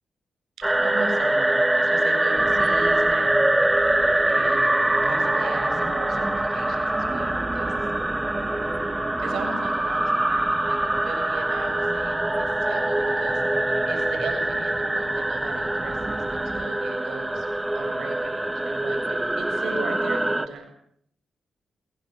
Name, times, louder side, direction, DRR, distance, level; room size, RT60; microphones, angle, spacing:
sound 1, 0.6-20.5, right 1 dB, 10° right, 1.6 m, -24 dB
voice 1, 0.6-3.5 4.2-7.7 9.2-13.4 13.9-17.5 17.7-20.6, right 4 dB, 85° right, 5 dB, 7.2 m, -37 dB
sound 2, 2.4-16.7, right 2 dB, 30° right, 3.5 m, -39 dB
23.0 x 22.5 x 8.0 m, 0.68 s
cardioid pair, 75°, 0 cm